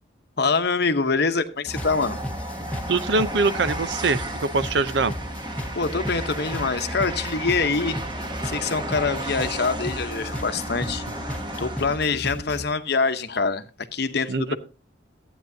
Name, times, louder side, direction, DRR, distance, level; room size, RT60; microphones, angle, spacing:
voice 1, 0.4-2.2 5.7-8.0 8.4-11.0 11.6-13.7 13.9-14.6, left 4 dB, 55° left, 0.9 m, -24 dB
sound 1, 1.7-12.7, equal, 5° left, 0.9 m, -34 dB
Train, 1.7-12.2, right 1 dB, 25° right, 1.0 m, -34 dB
voice 2, 2.9-5.1 14.3-14.5, right 3 dB, 60° right, 0.6 m, -23 dB
14.5 x 9.1 x 2.7 m
head